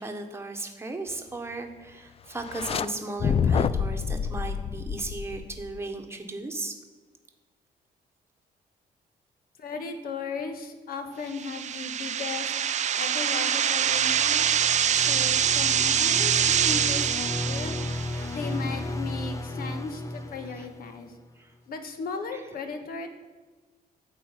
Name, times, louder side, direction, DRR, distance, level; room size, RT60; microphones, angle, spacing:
voice 1, 0.0-6.8 16.9-17.0 17.4-18.8 20.5-20.7 22.3-22.4, right 2 dB, 15° right, 4 dB, 1.2 m, -37 dB
sound 1, 2.4-2.9 3.2-5.8, left 6 dB, 35° left, 0.4 m, -27 dB
voice 2, 9.6-12.5 13.0-14.5 14.9-17.8 18.3-21.1 21.7-23.1, left 4 dB, 65° left, 6 dB, 1.4 m, -36 dB
sound 2, 11.3-18.3, right 9 dB, 45° right, 0.5 m, -25 dB
sound 3, 13.9-21.3, left 1 dB, 20° left, 0.7 m, -34 dB
13.5 x 4.7 x 8.9 m, 1.4 s
cardioid pair, 145°, 16 cm